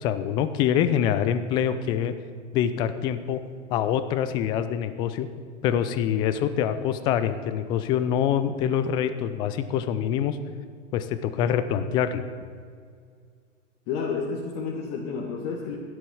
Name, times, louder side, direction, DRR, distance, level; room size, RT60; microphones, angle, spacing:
voice 1, 0.0-2.1 2.5-3.4 3.7-5.3 5.6-10.4 10.9-12.2, left 9 dB, 15° left, 11 dB, 0.3 m, -25 dB
voice 2, 13.9-15.8, left 5 dB, 35° left, -2 dB, 1.8 m, -30 dB
13.0 x 10.5 x 7.1 m, 2.1 s
figure-of-eight pair, 100°, 37 cm